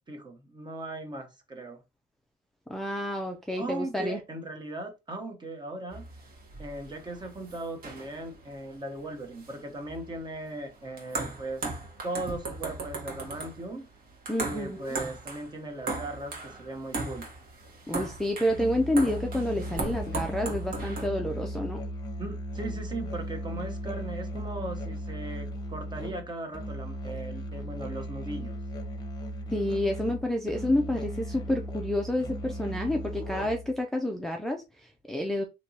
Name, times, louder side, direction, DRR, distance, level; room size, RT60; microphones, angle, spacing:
voice 1, 0.1-1.8 3.5-6.0 6.6-11.6 12.0-13.9 14.4-17.3 22.2-28.6, right 2 dB, 25° right, 1.1 m, -38 dB
voice 2, 2.7-4.2 14.3-15.0 17.9-21.8 29.5-35.4, left 1 dB, ahead, 0.5 m, -29 dB
sound 1, 5.9-21.1, right 3 dB, 55° right, 1.4 m, -38 dB
Musical instrument, 18.5-33.8, equal, 25° left, 0.9 m, -37 dB
3.4 x 2.9 x 2.8 m
cardioid pair, 110°, 17 cm